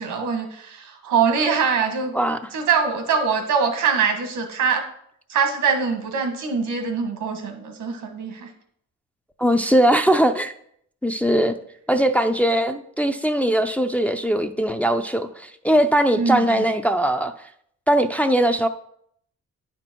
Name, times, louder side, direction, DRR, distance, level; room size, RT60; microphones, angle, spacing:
voice 1, 0.0-2.1 2.5-4.9 5.3-8.5 16.1-16.6, right 6 dB, 85° right, 5 dB, 1.6 m, -23 dB
voice 2, 9.4-10.5 11.0-11.5 11.9-17.3 17.9-18.7, right 1 dB, 5° left, 7 dB, 0.4 m, -20 dB
9.5 x 4.3 x 4.5 m, 0.69 s
cardioid pair, 90°, 30 cm